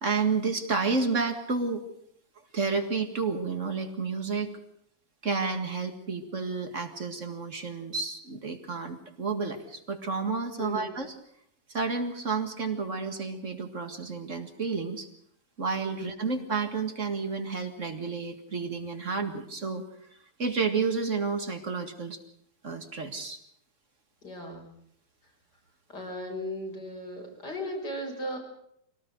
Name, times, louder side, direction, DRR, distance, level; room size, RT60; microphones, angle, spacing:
voice 1, 0.0-1.8 2.5-4.6 5.2-11.1 11.7-15.1 15.6-19.8 20.4-22.2 22.6-23.4, right 4 dB, 50° right, 6 dB, 2.3 m, -30 dB
voice 2, 10.6-11.0 15.9-16.2 24.2-24.7 25.9-28.4, left 1 dB, 85° left, 1 dB, 6.1 m, -37 dB
24.0 x 18.0 x 6.6 m, 0.71 s
omnidirectional pair, 1.8 m